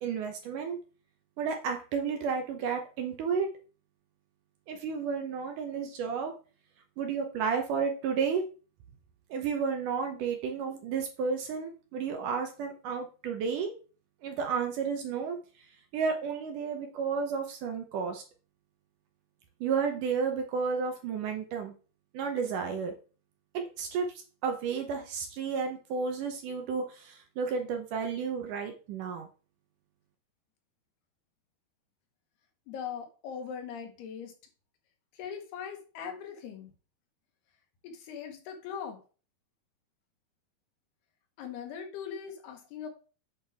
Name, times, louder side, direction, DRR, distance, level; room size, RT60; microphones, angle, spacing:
voice 1, 0.0-0.8 1.4-3.5 4.7-6.3 7.0-8.4 9.3-13.7 14.2-15.4 15.9-18.2 19.6-21.7 22.1-22.9 23.5-24.1 24.4-29.3, right 6 dB, 70° right, 4 dB, 2.1 m, -32 dB
voice 2, 32.7-34.3 35.1-36.7 37.8-39.0 41.4-42.9, left 7 dB, 90° left, 4 dB, 3.4 m, -40 dB
8.4 x 5.7 x 3.5 m, 0.36 s
omnidirectional pair, 4.5 m